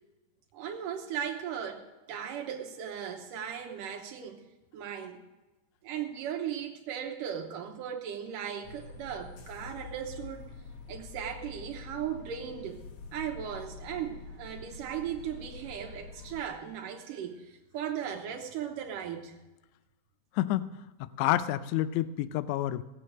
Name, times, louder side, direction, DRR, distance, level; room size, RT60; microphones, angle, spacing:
voice 1, 0.5-4.4 4.7-5.2 5.8-10.5 10.9-12.8 13.1-19.3, right 9 dB, 85° right, 3 dB, 2.7 m, -37 dB
sound 1, 8.6-16.4, left 4 dB, 60° left, 1.8 m, -46 dB
voice 2, 20.4-22.8, left 13 dB, 80° left, 14 dB, 1.8 m, -29 dB
18.5 x 8.0 x 6.4 m, 1.1 s
omnidirectional pair, 3.8 m